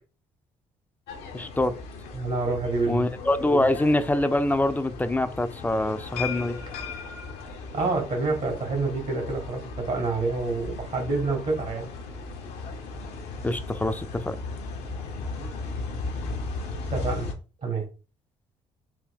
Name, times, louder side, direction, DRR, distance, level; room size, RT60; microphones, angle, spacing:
sound 1, 1.1-17.3, left 3 dB, 80° left, 0.7 m, -36 dB
voice 1, 1.3-1.7 2.9-6.6 13.4-14.4, left 1 dB, 10° left, 0.4 m, -24 dB
voice 2, 2.1-3.0 3.5-3.6 7.7-11.9 15.4-15.8 16.9-17.3 17.6-17.9, right 3 dB, 60° right, 1.6 m, -28 dB
3.5 x 2.2 x 3.5 m
supercardioid pair, 60°, 15 cm